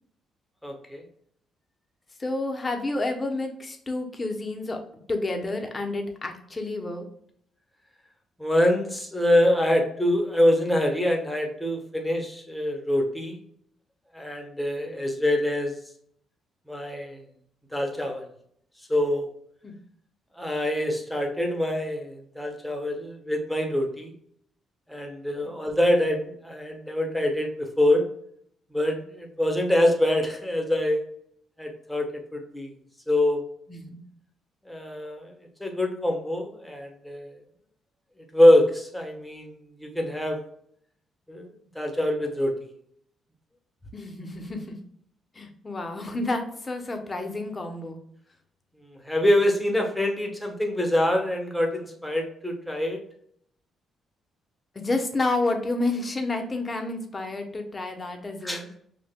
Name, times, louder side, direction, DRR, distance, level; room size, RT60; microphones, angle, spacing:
voice 1, 0.6-1.0 8.4-13.4 14.1-15.7 16.7-17.2 17.7-18.3 18.9-19.3 20.4-24.1 24.9-28.0 28.7-31.0 31.6-32.1 32.3-32.7 33.1-33.4 34.7-35.3 35.6-37.3 38.3-40.4 41.3-41.5 41.7-42.5 49.0-53.0 58.4-58.8, left 1 dB, 5° left, 2 dB, 1.2 m, -24 dB
voice 2, 2.2-4.8 5.1-7.1 19.6-19.7 25.4-25.6 33.7-34.0 43.9-44.8 45.3-48.0 54.7-58.7, left 2 dB, 25° left, 4 dB, 1.0 m, -30 dB
6.3 x 2.5 x 2.3 m, 0.67 s
cardioid pair, 90°, 0 cm